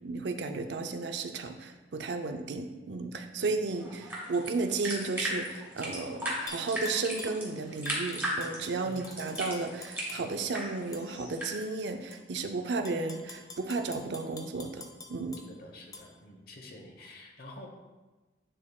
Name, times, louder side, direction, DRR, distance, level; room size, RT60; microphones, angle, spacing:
voice 1, 0.0-14.8 15.1-15.4, right 3 dB, 75° right, 6 dB, 0.5 m, -33 dB
sound 1, 3.7-11.5, right 1 dB, 10° right, 1.8 m, -37 dB
Tap / Glass, 6.5-7.4 7.8-10.5 10.9-11.1 11.6-12.2 12.7-15.4 15.9-16.0, left 3 dB, 20° left, 0.6 m, -47 dB
voice 2, 15.5-17.7, left 1 dB, 55° left, 2 dB, 1.0 m, -48 dB
9.9 x 4.3 x 2.3 m, 1.2 s
head